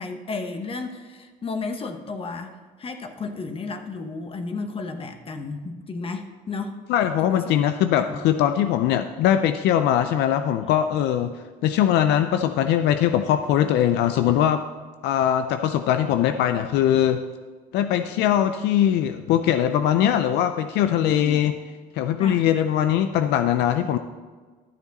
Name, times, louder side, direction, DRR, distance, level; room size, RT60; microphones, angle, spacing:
voice 1, 0.0-6.8 7.2-7.6 8.0-8.2 21.0-21.5 22.2-22.5, left 3 dB, 35° left, 7 dB, 1.0 m, -33 dB
voice 2, 6.9-11.3 11.6-14.6 15.0-17.2 17.7-21.5 21.9-24.0, left 10 dB, 85° left, 9 dB, 0.5 m, -21 dB
12.0 x 7.0 x 4.1 m, 1.4 s
cardioid pair, 110°, 17 cm